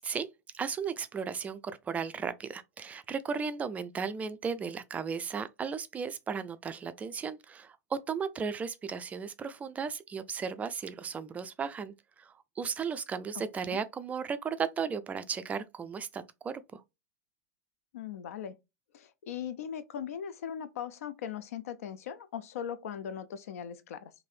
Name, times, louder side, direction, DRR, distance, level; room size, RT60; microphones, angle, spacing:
voice 1, 0.5-16.8, right 6 dB, 15° right, 0.3 m, -35 dB
voice 2, 17.9-18.6 18.9-24.1, left 8 dB, 60° left, 0.4 m, -39 dB
3.1 x 2.6 x 2.5 m
figure-of-eight pair, 95°, 9 cm